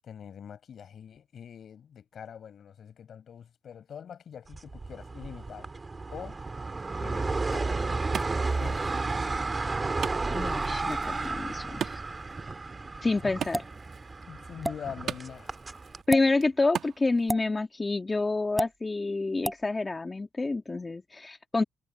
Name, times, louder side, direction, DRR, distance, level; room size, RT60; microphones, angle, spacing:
voice 1, 0.0-5.7 6.1-6.4 7.0-9.4 13.2-13.4 14.3-15.5, left 8 dB, 55° left, 5.2 m, -44 dB
sound 1, 4.5-16.0, right 3 dB, 25° right, 2.8 m, -32 dB
Wood, 7.3-17.3, right 8 dB, 65° right, 2.0 m, -42 dB
voice 2, 10.3-12.0 13.0-13.6 16.1-21.6, left 3 dB, 25° left, 2.5 m, -28 dB
sound 2, 13.5-13.8 14.6-14.8 16.0-16.2 17.3-17.5 18.6-18.7 19.4-19.6, right 1 dB, 10° right, 3.6 m, -30 dB
cardioid pair, 90°, 0 cm